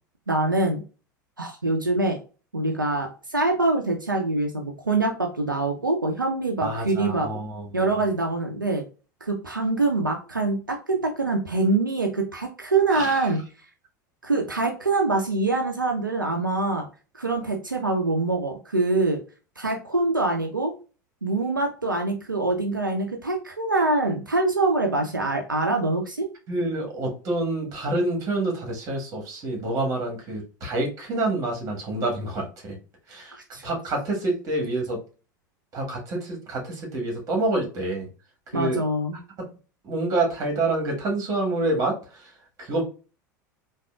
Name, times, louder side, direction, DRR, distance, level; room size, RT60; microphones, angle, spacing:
voice 1, 0.3-0.8 1.4-2.2 2.5-7.3 7.7-8.8 9.2-13.4 14.2-16.9 17.1-19.2 19.6-20.7 21.2-26.3 33.3-33.6 38.5-39.2, right 2 dB, 85° right, 3 dB, 0.4 m, -24 dB
voice 2, 6.6-8.0 12.9-13.3 26.5-32.8 33.1-35.0 35.7-38.1 38.5-38.8 39.4-39.5 39.8-42.3 42.6-42.8, right 2 dB, 35° right, 1 dB, 1.4 m, -27 dB
3.5 x 2.6 x 2.2 m, 0.34 s
figure-of-eight pair, 80°, 10 cm